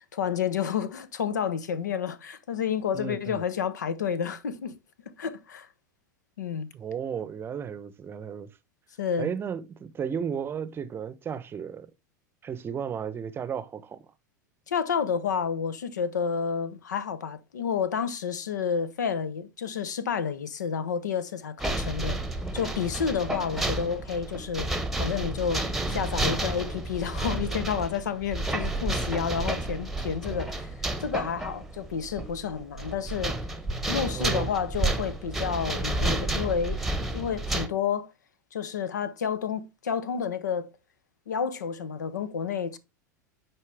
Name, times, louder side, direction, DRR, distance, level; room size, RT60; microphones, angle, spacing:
voice 1, 0.1-4.8 5.2-5.7 6.4-6.7 9.0-9.3 14.7-22.2 22.5-24.7 25.0-30.7 31.0-33.4 33.9-36.8 37.1-38.1 38.5-40.7 41.3-42.8, left 7 dB, 70° left, 0.9 m, -30 dB
voice 2, 2.9-3.4 6.7-8.5 9.2-11.9 12.4-14.0 34.1-34.5, right 7 dB, 25° right, 0.8 m, -34 dB
sound 1, 21.6-37.7, right 2 dB, ahead, 1.1 m, -31 dB
9.8 x 4.5 x 3.3 m
figure-of-eight pair, 90°, 10 cm